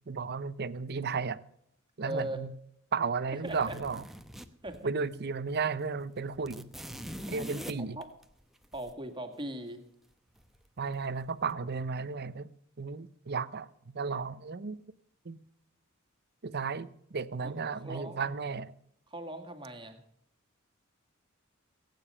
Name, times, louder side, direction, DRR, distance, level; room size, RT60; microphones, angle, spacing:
voice 1, 0.1-1.4 2.0-2.5 2.9-4.0 4.8-6.7 7.3-8.0 10.8-12.5 12.8-14.8 15.2-15.4 16.4-18.7, right 5 dB, 50° right, 16 dB, 0.7 m, -34 dB
voice 2, 2.0-2.4 3.4-3.8 4.6-4.9 7.3-8.1 8.7-9.8 17.4-17.5 17.8-18.2 19.1-20.0, right 1 dB, 25° right, 6 dB, 2.0 m, -39 dB
sound 1, 3.5-5.2 5.5-5.6 5.9-8.9 10.4-10.9 11.2-11.5, equal, ahead, 0.9 m, -44 dB
20.0 x 9.3 x 5.5 m, 0.73 s
head